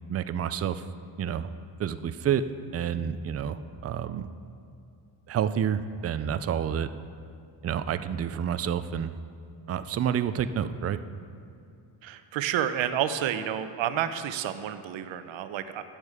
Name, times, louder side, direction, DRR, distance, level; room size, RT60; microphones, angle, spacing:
voice 1, 0.1-0.8 1.2-1.5 1.8-2.4 2.7-4.3 5.3-6.9 7.6-9.2 9.7-11.0, right 8 dB, 35° right, 12 dB, 0.4 m, -29 dB
voice 2, 12.0-15.8, right 10 dB, 70° right, 11 dB, 0.8 m, -30 dB
13.0 x 8.9 x 5.0 m, 2.5 s
cardioid pair, 115°, 48 cm